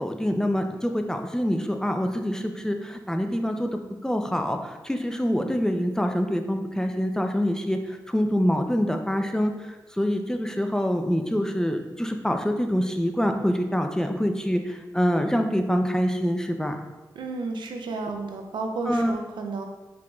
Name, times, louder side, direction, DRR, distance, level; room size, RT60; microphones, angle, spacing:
voice 1, 0.0-3.7 4.0-16.8 18.9-19.1, equal, 5° left, 5 dB, 0.4 m, -25 dB
voice 2, 17.2-19.7, right 3 dB, 90° right, 4 dB, 0.4 m, -32 dB
4.7 x 3.8 x 2.3 m, 1.2 s
cardioid pair, 50°, 8 cm